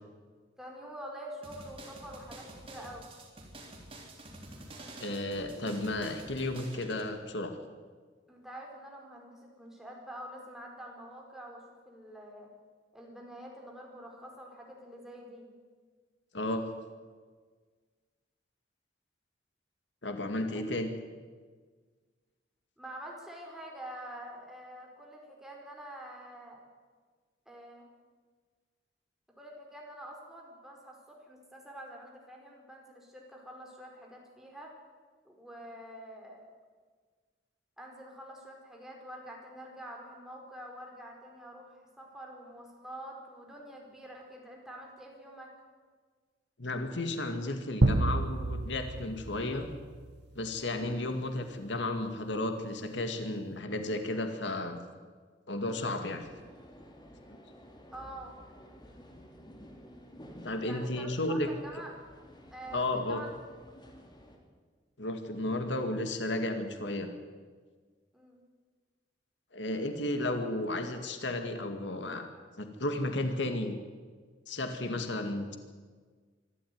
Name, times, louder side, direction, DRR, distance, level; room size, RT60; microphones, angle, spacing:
voice 1, 0.6-3.1 8.3-12.5 12.9-15.5 20.5-20.6 22.8-26.6 27.5-27.9 29.4-34.7 35.2-36.5 37.8-45.5 57.9-58.3 60.6-61.9 62.5-63.4 68.1-68.4, right 1 dB, ahead, -1 dB, 4.6 m, -46 dB
sound 1, 1.4-7.1, right 1 dB, 30° right, 3.8 m, -48 dB
voice 2, 5.0-7.6 16.3-16.7 20.0-20.9 46.6-49.7 50.3-54.8 55.5-56.3 57.3-57.4 60.4-61.5 62.7-63.2 65.0-67.1 69.5-72.3 72.6-73.8 74.5-75.6, left 1 dB, 80° left, 6 dB, 2.1 m, -33 dB
sound 2, 47.8-50.3, right 2 dB, 65° right, 0.8 m, -29 dB
sound 3, 56.2-64.4, equal, 25° left, 3.1 m, -53 dB
25.0 x 13.0 x 9.5 m, 1.5 s
head